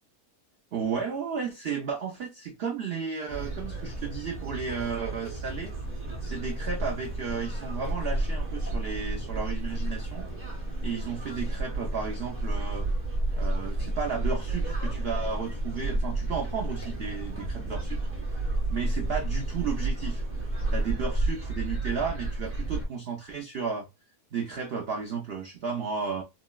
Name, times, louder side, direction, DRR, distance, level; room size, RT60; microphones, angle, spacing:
voice 1, 0.7-5.7 6.2-10.3 10.8-12.9 13.4-20.2 20.7-23.9 24.3-26.2, right 5 dB, 90° right, 0.5 m, -33 dB
sound 1, 3.3-22.9, right 2 dB, 15° right, 0.4 m, -31 dB
3.8 x 2.0 x 2.2 m
omnidirectional pair, 1.7 m